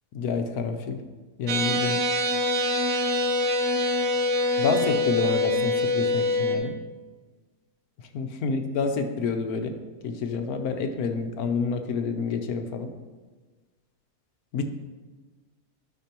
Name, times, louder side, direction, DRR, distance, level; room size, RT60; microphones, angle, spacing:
voice 1, 0.1-1.0 1.4-2.0 4.6-6.8 8.1-9.7 10.0-12.9 14.5-14.6, left 4 dB, 75° left, 6 dB, 1.2 m, -28 dB
sound 1, 1.5-6.6, left 1 dB, 60° right, 1.2 m, -24 dB
12.0 x 5.9 x 2.9 m, 1.3 s
omnidirectional pair, 1.7 m